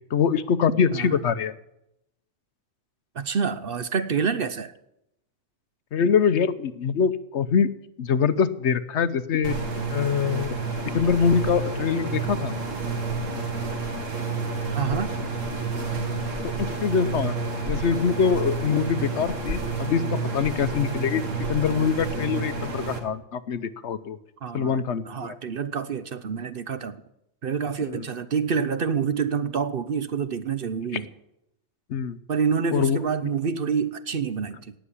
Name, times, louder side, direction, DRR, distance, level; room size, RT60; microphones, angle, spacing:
voice 1, 0.1-1.5 5.9-7.7 8.0-9.6 9.9-10.6 10.9-12.5 16.6-17.4 17.6-21.2 21.5-24.2 24.5-25.4 27.9-28.0 31.9-32.2 32.7-33.0, left 6 dB, 65° left, 14 dB, 1.0 m, -24 dB
voice 2, 3.1-4.7 14.7-15.1 24.4-27.0 27.4-31.1 32.3-34.7, right 6 dB, 50° right, 13 dB, 0.9 m, -27 dB
sound 1, 9.4-23.0, right 4 dB, 85° right, 2.1 m, -29 dB
18.0 x 7.1 x 9.9 m, 0.82 s
omnidirectional pair, 1.3 m